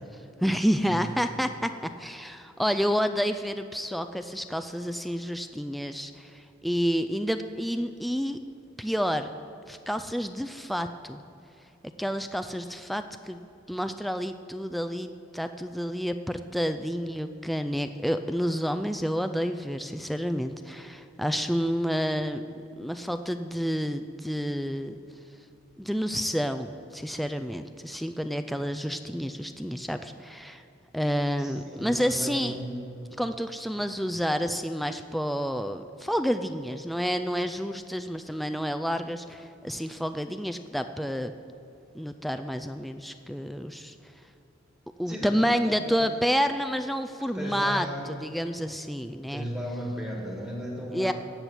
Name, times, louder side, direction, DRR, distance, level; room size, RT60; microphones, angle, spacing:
voice 1, 0.4-8.4 8.8-9.3 9.7-11.2 12.0-22.4 22.8-25.0 25.8-30.6 30.9-32.6 33.2-41.3 41.9-44.0 45.0-49.5 50.9-51.1, equal, ahead, 8 dB, 0.3 m, -29 dB
voice 2, 31.4-32.8 45.1-46.1 47.3-48.1 49.3-51.1, equal, 15° right, -2 dB, 1.7 m, -35 dB
16.0 x 6.0 x 8.1 m, 2.6 s
head